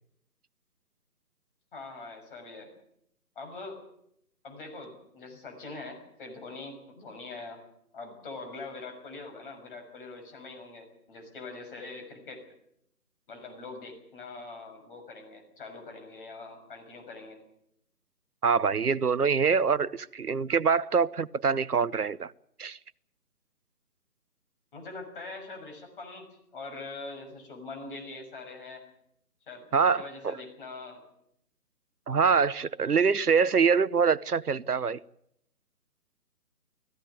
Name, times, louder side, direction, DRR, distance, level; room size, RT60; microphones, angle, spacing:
voice 1, 1.7-2.7 3.3-3.8 4.4-7.6 7.9-12.4 13.3-17.4 24.7-26.3 26.5-28.8 29.5-31.0 32.1-32.3, left 3 dB, 35° left, 3 dB, 6.4 m, -43 dB
voice 2, 18.4-22.3 22.6-22.8 29.7-30.4 32.1-35.0, right 5 dB, 80° right, 18 dB, 0.9 m, -25 dB
19.0 x 15.5 x 9.5 m, 0.75 s
figure-of-eight pair, 145°, 45 cm